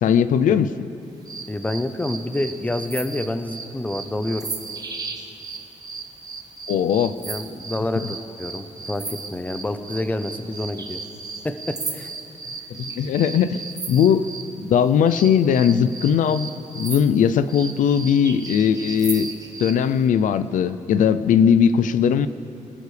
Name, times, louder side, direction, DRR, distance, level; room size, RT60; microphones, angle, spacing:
voice 1, 0.0-0.7 6.7-7.2 12.7-13.6 13.9-14.3 14.6-16.5 16.7-19.3 19.6-22.3, left 8 dB, 85° left, 13 dB, 0.5 m, -19 dB
sound 1, 1.2-14.5 15.1-19.8, right 4 dB, 30° right, 1.2 m, -35 dB
voice 2, 1.5-4.5 7.2-11.0 11.4-12.1, left 1 dB, 10° left, 9 dB, 0.7 m, -28 dB
25.5 x 13.5 x 3.3 m, 2.9 s
cardioid pair, 120°, 13 cm